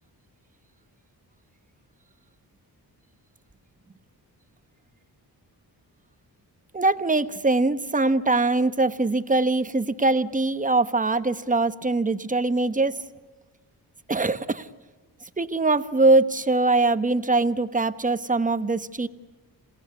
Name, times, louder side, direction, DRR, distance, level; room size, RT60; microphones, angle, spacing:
voice 1, 6.7-13.0 14.1-14.7 15.4-19.1, right 2 dB, 20° right, 12 dB, 1.1 m, -22 dB
28.0 x 17.5 x 9.7 m, 1.3 s
wide cardioid pair, 100°, 39 cm